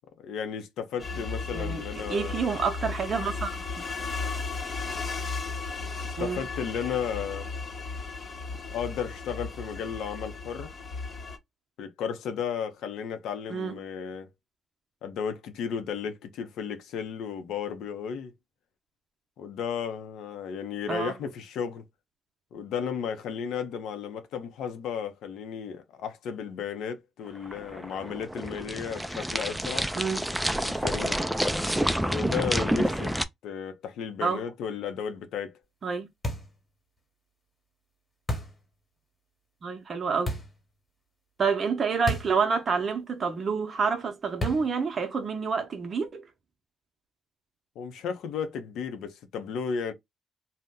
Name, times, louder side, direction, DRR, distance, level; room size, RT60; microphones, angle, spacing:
voice 1, 0.2-2.4 6.0-7.5 8.7-10.7 11.8-14.3 15.0-18.3 19.4-21.8 22.5-29.9 30.6-31.2 32.1-33.2 33.4-35.6 47.8-49.9, left 7 dB, 80° left, 0.6 m, -34 dB
sound 1, 1.0-11.4, left 4 dB, 45° left, 0.8 m, -35 dB
voice 2, 1.5-1.8 2.1-3.8 6.2-6.4 13.5-13.7 20.9-21.1 29.9-30.2 34.2-34.4 35.8-36.1 39.6-40.4 41.4-46.2, right 5 dB, 45° right, 0.6 m, -28 dB
sound 2, 27.3-33.2, right 1 dB, 5° right, 0.3 m, -28 dB
sound 3, 36.2-36.6 38.3-38.6 40.3-40.6 42.1-42.4 42.7-42.8 44.4-44.8, left 1 dB, 25° left, 1.1 m, -32 dB
2.8 x 2.1 x 3.5 m
cardioid pair, 90°, 0 cm